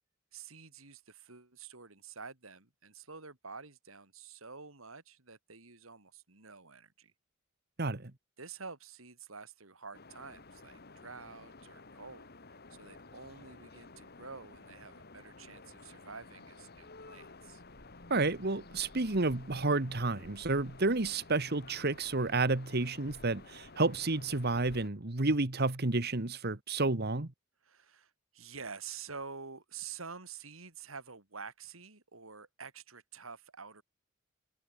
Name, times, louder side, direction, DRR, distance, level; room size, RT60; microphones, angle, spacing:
voice 1, 0.3-7.1 8.4-17.6 27.6-33.8, right 5 dB, 90° right, 4.3 m, -48 dB
voice 2, 7.8-8.1 18.1-27.3, right 3 dB, 50° right, 1.6 m, -30 dB
sound 1, 9.9-24.9, left 3 dB, 50° left, 2.3 m, -53 dB
head